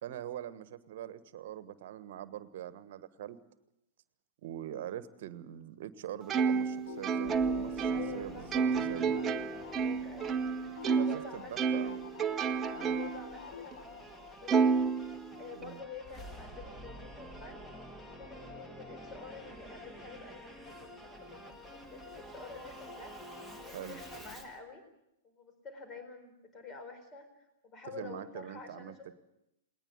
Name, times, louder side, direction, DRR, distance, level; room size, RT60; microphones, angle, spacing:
voice 1, 0.0-3.4 4.4-9.2 11.0-12.1 12.7-13.1 15.5-15.8 23.7-24.0 27.9-29.1, right 11 dB, 55° right, 14 dB, 1.3 m, -43 dB
Plucked string instrument, 6.3-11.2 11.6-13.3 13.7-13.8 14.5-15.6, right 5 dB, 20° right, 0.9 m, -30 dB
sound 1, 6.6-13.8, left 7 dB, 60° left, 1.5 m, -48 dB
Singing / Musical instrument, 7.2-24.6, equal, 10° left, 2.1 m, -49 dB
voice 2, 7.9-8.8 9.6-12.0 12.8-15.1 15.4-17.6 18.2-23.1 23.6-24.8 25.2-27.3 27.6-29.1, left 4 dB, 25° left, 8 dB, 4.3 m, -49 dB
19.5 x 19.5 x 8.1 m, 0.84 s
figure-of-eight pair, 105°, 0 cm